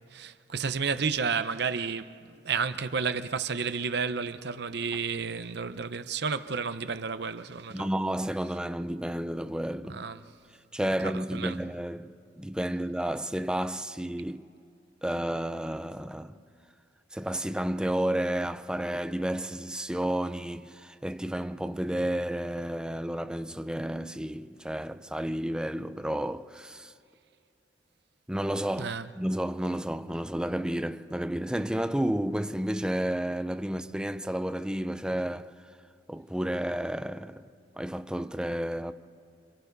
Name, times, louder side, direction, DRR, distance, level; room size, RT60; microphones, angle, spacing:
voice 1, 0.1-2.2 2.4-7.9 9.9-10.2 11.0-11.6 28.8-29.1, right 5 dB, 65° right, 0.8 m, -31 dB
voice 2, 7.7-10.0 10.7-14.4 15.0-16.4 17.1-26.9 28.3-35.5 36.1-37.4 37.8-38.9, right 1 dB, 5° right, 0.6 m, -31 dB
29.5 x 25.5 x 4.1 m
head